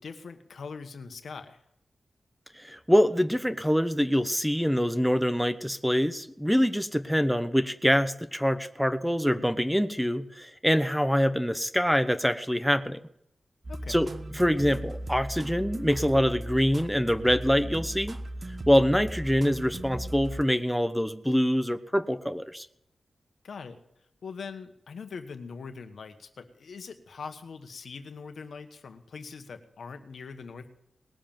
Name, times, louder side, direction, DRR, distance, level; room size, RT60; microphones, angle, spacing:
voice 1, 0.0-1.6 13.7-14.1 23.4-23.8 24.2-30.7, left 5 dB, 80° left, 8 dB, 1.4 m, -42 dB
voice 2, 2.6-13.0 13.9-14.1 14.3-18.2 18.7-22.7, equal, ahead, 11 dB, 1.0 m, -25 dB
sound 1, 13.6-20.4, right 1 dB, 45° right, 1.2 m, -37 dB
19.5 x 7.5 x 9.0 m, 0.76 s
wide cardioid pair, 80°, 0 cm